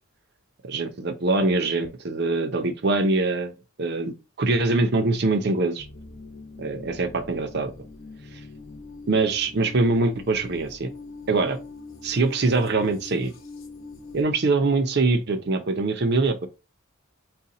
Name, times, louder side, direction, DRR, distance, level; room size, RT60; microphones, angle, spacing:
voice 1, 0.7-3.5 3.8-5.9 6.6-7.7 8.3-8.4 9.1-10.9 11.3-11.6 12.0-13.3 14.1-16.5, right 3 dB, 50° right, 0.6 m, -23 dB
sound 1, 5.8-14.2, left 3 dB, 60° left, 0.9 m, -43 dB
4.1 x 2.2 x 3.8 m
head